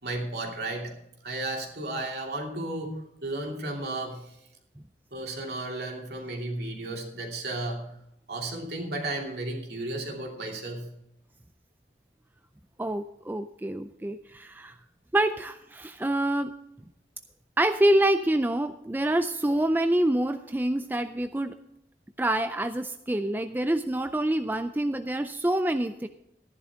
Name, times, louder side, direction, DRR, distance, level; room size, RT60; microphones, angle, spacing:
voice 1, 0.0-0.9 1.2-4.2 5.1-7.8 8.3-10.9, right 2 dB, 65° right, 0 dB, 2.8 m, -33 dB
voice 2, 12.8-14.8 15.1-16.5 17.6-21.6 22.2-26.1, right 1 dB, 10° right, 8 dB, 0.4 m, -26 dB
14.0 x 11.0 x 3.6 m, 0.81 s
head